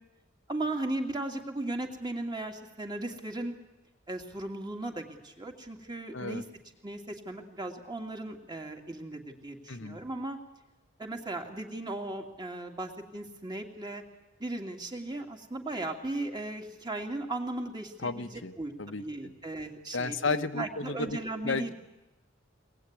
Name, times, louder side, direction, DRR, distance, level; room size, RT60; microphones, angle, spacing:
voice 1, 0.5-3.6 4.1-6.4 6.8-10.4 11.0-14.0 14.4-18.3 18.6-21.7, right 2 dB, 20° right, 3 dB, 2.7 m, -37 dB
voice 2, 6.1-6.4 9.7-10.0 18.0-19.3 19.9-21.2 21.4-21.7, left 3 dB, 75° left, 9 dB, 1.1 m, -33 dB
23.5 x 19.5 x 9.8 m, 1.0 s
head